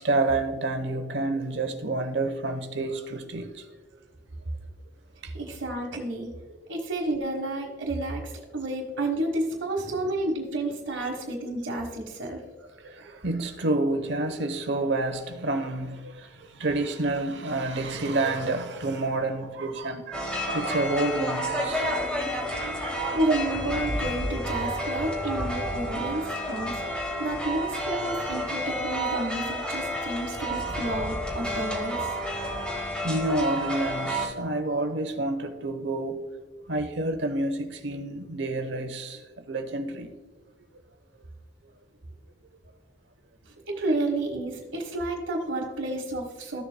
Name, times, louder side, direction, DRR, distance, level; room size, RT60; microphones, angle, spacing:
voice 1, 0.0-3.5 12.8-22.1 22.4-23.0 33.0-36.2 36.7-39.2 39.5-40.1, right 2 dB, 65° right, 0.9 m, -29 dB
voice 2, 5.3-6.3 6.7-12.4 23.1-26.8 27.2-32.2 43.7-46.6, right 1 dB, 90° right, 1.3 m, -30 dB
sound 1, 20.1-34.3, equal, 5° left, 1.5 m, -30 dB
14.0 x 7.2 x 2.2 m
head